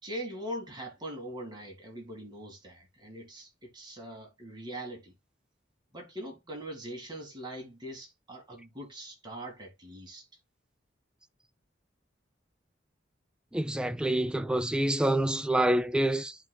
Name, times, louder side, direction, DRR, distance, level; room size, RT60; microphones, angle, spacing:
voice 1, 0.0-5.1 5.9-10.3, equal, 25° right, 2.1 m, -42 dB
voice 2, 13.5-16.4, right 1 dB, 5° right, 0.4 m, -27 dB
11.0 x 3.9 x 2.3 m
head